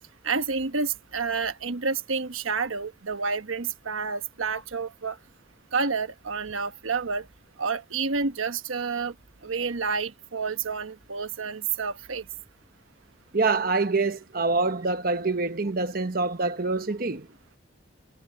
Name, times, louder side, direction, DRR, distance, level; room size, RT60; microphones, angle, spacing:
voice 1, 0.2-5.2 5.7-7.3 7.6-9.1 9.4-12.2, right 5 dB, 90° right, 1.2 m, -29 dB
voice 2, 13.3-17.3, right 3 dB, 45° right, 1.0 m, -25 dB
head